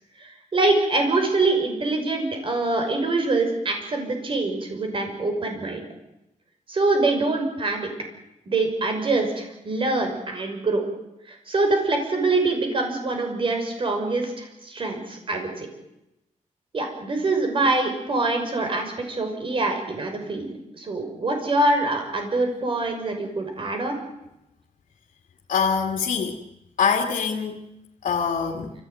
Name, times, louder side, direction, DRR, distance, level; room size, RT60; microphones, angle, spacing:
voice 1, 0.2-5.8 6.7-7.9 8.5-10.8 11.3-15.7 16.7-24.0, right 2 dB, 40° right, 4 dB, 6.0 m, -24 dB
voice 2, 25.5-26.4 26.8-27.6 28.0-28.7, left 6 dB, 70° left, 1 dB, 2.4 m, -24 dB
29.0 x 15.5 x 9.4 m, 0.90 s
wide cardioid pair, 165°, 14 cm